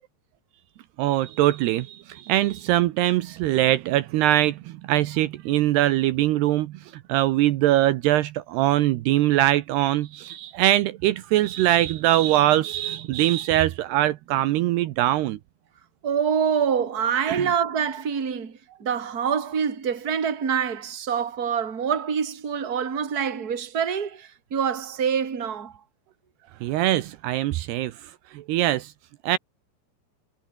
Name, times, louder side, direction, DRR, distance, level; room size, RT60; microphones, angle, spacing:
voice 1, 1.0-6.7 7.1-15.4 17.3-17.5 26.6-27.9 28.3-28.9 29.2-29.4, right 14 dB, 80° right, 2.8 m, -22 dB
voice 2, 16.0-25.8, right 7 dB, 25° right, 2.5 m, -26 dB
omnidirectional pair, 5.1 m